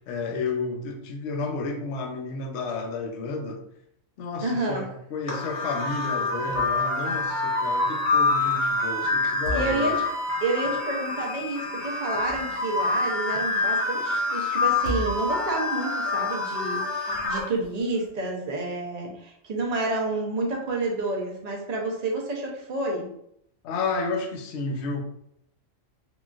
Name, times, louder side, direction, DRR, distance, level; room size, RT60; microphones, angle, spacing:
voice 1, 0.0-3.6 4.2-10.0 23.6-25.0, left 3 dB, 65° left, 2 dB, 0.7 m, -31 dB
voice 2, 4.4-4.9 9.2-10.0 10.4-23.1, right 2 dB, 50° right, -1 dB, 0.5 m, -29 dB
sound 1, 5.3-17.4, left 3 dB, 30° left, 0.7 m, -26 dB
sound 2, 6.5-7.0 7.3-7.4 9.2-10.2 11.9-12.8 14.7-15.6, equal, 85° left, 1.3 m, -35 dB
3.8 x 2.4 x 2.4 m, 0.74 s
omnidirectional pair, 1.4 m